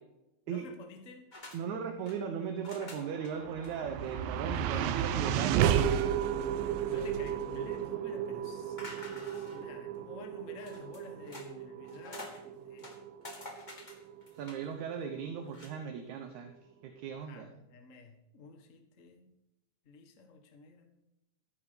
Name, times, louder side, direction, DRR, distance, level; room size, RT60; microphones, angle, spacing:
voice 1, 0.5-1.3 4.3-5.6 6.6-12.9 17.2-19.3 19.8-20.9, left 4 dB, 55° left, 5 dB, 0.8 m, -51 dB
sound 1, 1.3-1.6 1.8-2.2 2.6-3.3 3.6-3.7 4.1-4.2 4.5-4.8 5.7-6.2 6.7-7.4 8.8-9.7 10.6-11.5 11.8-12.4 12.8-14.7 15.4-15.7, left 2 dB, 25° left, 0.9 m, -49 dB
voice 2, 1.5-5.7 14.4-16.5 16.8-17.5, right 7 dB, 65° right, 5 dB, 2.2 m, -37 dB
sound 2, 3.0-15.4, right 9 dB, 90° right, 2.5 m, -33 dB
14.0 x 10.0 x 5.2 m, 0.89 s
omnidirectional pair, 4.0 m